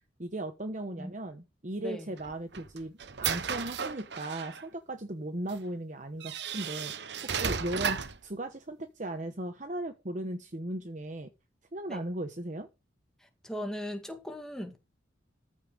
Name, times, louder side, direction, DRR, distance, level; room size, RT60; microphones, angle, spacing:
voice 1, 0.2-11.3 11.7-12.7, right 1 dB, 40° right, 1.1 m, -37 dB
sound 1, 2.2-4.6 5.5-5.6 6.2-8.2, right 6 dB, 65° right, 1.0 m, -34 dB
voice 2, 13.2-14.8, equal, 5° left, 2.0 m, -38 dB
14.0 x 5.5 x 6.3 m
head